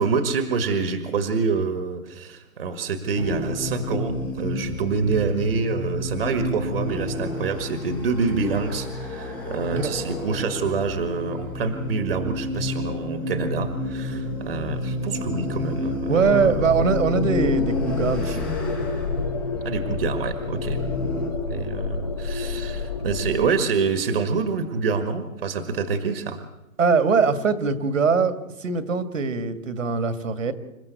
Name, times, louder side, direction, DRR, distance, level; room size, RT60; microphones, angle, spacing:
voice 1, 0.0-16.5 18.3-18.4 19.7-20.8 21.5-26.4, right 4 dB, 40° right, 9 dB, 1.8 m, -26 dB
sound 1, 3.2-21.3, left 2 dB, 5° left, 1.2 m, -30 dB
voice 2, 16.1-18.5 26.8-28.3 28.6-30.5, right 5 dB, 60° right, 10 dB, 2.2 m, -22 dB
sound 2, 16.2-23.4, left 4 dB, 30° left, 0.9 m, -29 dB
27.5 x 15.0 x 8.2 m, 1.0 s
hypercardioid pair, 175°, 43 cm